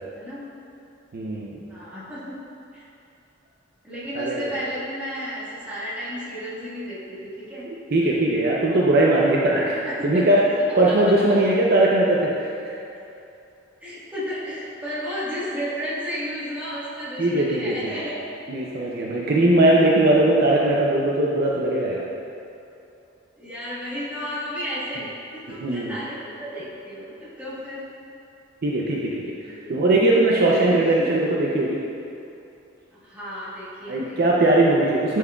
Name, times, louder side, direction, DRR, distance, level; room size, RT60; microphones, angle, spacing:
voice 1, 1.1-1.6 4.2-4.5 7.7-10.4 10.8-12.7 17.2-17.9 18.5-22.0 25.6-25.9 28.6-31.8 33.9-35.2, right 1 dB, 50° right, -4 dB, 0.5 m, -20 dB
voice 2, 1.7-2.4 2.7-2.8 3.8-7.7 9.9-11.0 11.3-11.4 13.8-18.2 18.8-18.9 23.4-27.8 29.5-29.9 30.7-31.1 33.0-34.5 35.1-35.2, equal, 10° right, -11 dB, 1.4 m, -33 dB
9.7 x 4.6 x 2.3 m, 2.8 s
head